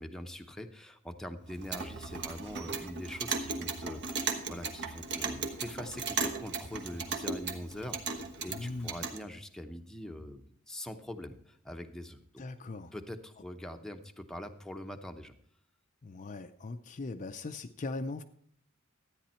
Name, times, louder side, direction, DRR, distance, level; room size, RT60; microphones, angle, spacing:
voice 1, 0.0-12.4 12.9-15.3, left 1 dB, 5° left, 5 dB, 0.7 m, -43 dB
Clock, 1.5-9.2, right 4 dB, 55° right, 1.2 m, -37 dB
voice 2, 8.5-9.0 12.4-12.9 16.0-18.2, left 3 dB, 35° left, 8 dB, 0.5 m, -39 dB
13.0 x 9.4 x 4.3 m, 0.62 s
head